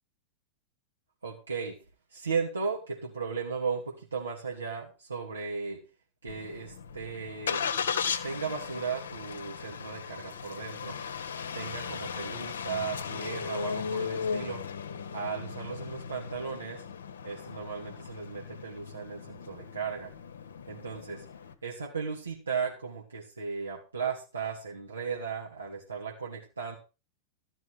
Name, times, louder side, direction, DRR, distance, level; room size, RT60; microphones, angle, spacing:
voice 1, 1.2-1.8 2.1-5.8 6.2-7.7 8.2-11.0 11.5-14.6 15.1-16.8 17.2-20.1 20.7-21.2 21.6-26.8, right 5 dB, 75° right, -2 dB, 3.0 m, -36 dB
Engine starting, 6.3-21.5, left 6 dB, 65° left, 1.5 m, -37 dB
14.5 x 6.6 x 6.1 m, 0.31 s
figure-of-eight pair, 90°, 0 cm